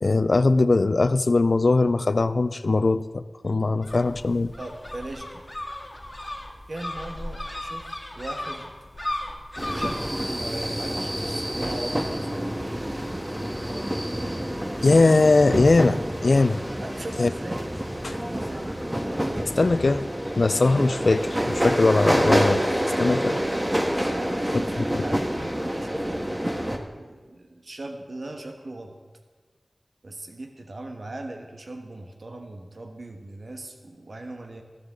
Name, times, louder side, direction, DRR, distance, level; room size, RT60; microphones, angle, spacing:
voice 1, 0.0-4.5 14.8-16.6 17.2-17.3 18.0-18.1 19.6-20.1 20.4-22.6 23.0-23.4 24.9-25.0, left 3 dB, 70° left, 14 dB, 0.5 m, -20 dB
sound 1, 3.8-10.2, left 1 dB, 25° left, 2.1 m, -35 dB
voice 2, 4.6-5.4 6.7-8.7 9.7-12.5 16.8-17.6 17.9-18.7 24.1-28.9 30.0-34.6, right 2 dB, 70° right, 3 dB, 1.3 m, -39 dB
sound 2, 9.6-26.8, equal, 20° right, 1.4 m, -27 dB
14.5 x 13.0 x 3.8 m, 1.4 s
wide cardioid pair, 45°, 0 cm